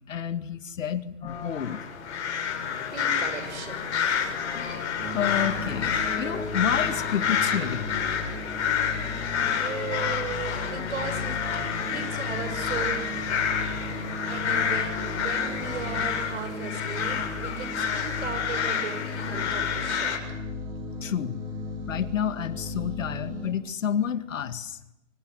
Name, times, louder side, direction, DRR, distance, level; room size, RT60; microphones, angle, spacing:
voice 1, 0.1-1.9 4.5-4.8 5.1-8.0 21.0-21.4 21.9-24.8, left 8 dB, 75° left, 11 dB, 2.2 m, -30 dB
sound 1, 1.2-16.0, left 5 dB, 15° left, 6.5 m, -41 dB
sound 2, 1.5-20.2, left 7 dB, 60° left, 7.1 m, -29 dB
voice 2, 2.9-3.9 9.5-11.4 11.8-13.1 14.1-20.4, right 6 dB, 60° right, 10 dB, 6.9 m, -37 dB
sound 3, 5.0-23.5, left 2 dB, 20° right, 7.0 m, -36 dB
29.0 x 25.0 x 8.1 m, 0.90 s
hypercardioid pair, 165°, 39 cm